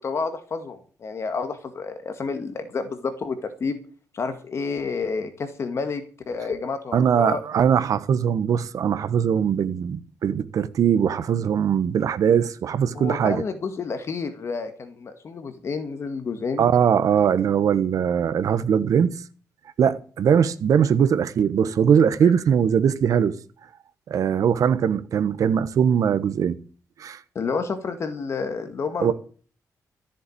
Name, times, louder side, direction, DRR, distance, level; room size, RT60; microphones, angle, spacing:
voice 1, 0.0-3.8 4.1-7.4 12.9-16.6 27.4-29.1, left 4 dB, 50° left, 1.9 m, -30 dB
voice 2, 6.9-13.4 16.6-19.1 19.8-23.3 24.1-26.6 27.0-27.2 29.0-29.1, right 8 dB, 70° right, 1.1 m, -21 dB
14.0 x 7.3 x 8.6 m
wide cardioid pair, 130°, 6 cm